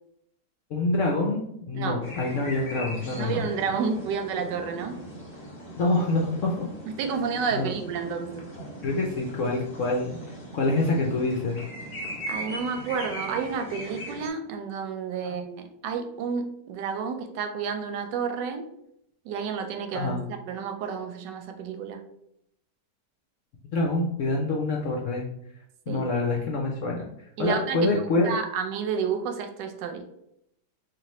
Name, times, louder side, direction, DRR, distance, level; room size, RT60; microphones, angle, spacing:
voice 1, 0.7-3.4 5.8-6.7 7.5-7.7 8.8-10.2 10.5-11.6 15.2-15.3 19.9-20.2 23.7-25.2 25.9-27.0 27.4-28.3, left 2 dB, 70° left, 0 dB, 0.7 m, -26 dB
sound 1, 2.0-14.3, equal, 30° left, 0.9 m, -40 dB
voice 2, 3.1-5.0 7.0-8.5 12.3-18.7 19.2-22.0 25.9-26.1 27.4-30.1, right 6 dB, 85° right, 7 dB, 1.2 m, -30 dB
3.2 x 2.5 x 4.1 m, 0.77 s
omnidirectional pair, 1.8 m